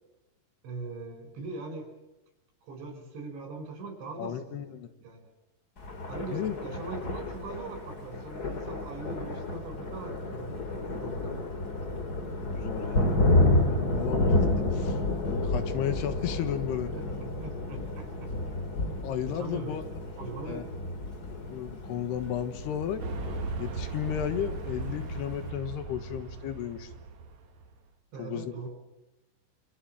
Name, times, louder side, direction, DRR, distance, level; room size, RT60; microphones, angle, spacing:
voice 1, 0.6-1.9 2.6-4.8 5.0-5.3 6.1-11.4 16.9-18.4 19.3-19.8 20.2-20.7 28.1-28.7, right 3 dB, 80° right, 5 dB, 6.9 m, -41 dB
voice 2, 4.2-4.9 6.3-6.6 12.6-15.0 15.2-16.9 19.0-19.8 20.5-20.6 21.5-23.0 23.6-26.9 28.2-28.5, left 10 dB, 70° left, 11 dB, 3.3 m, -34 dB
Thunder, 5.8-25.5, left 2 dB, 25° left, 2.4 m, -30 dB
sound 1, 23.0-27.8, right 4 dB, 50° right, 2.6 m, -38 dB
26.5 x 26.5 x 7.4 m, 1.0 s
omnidirectional pair, 5.1 m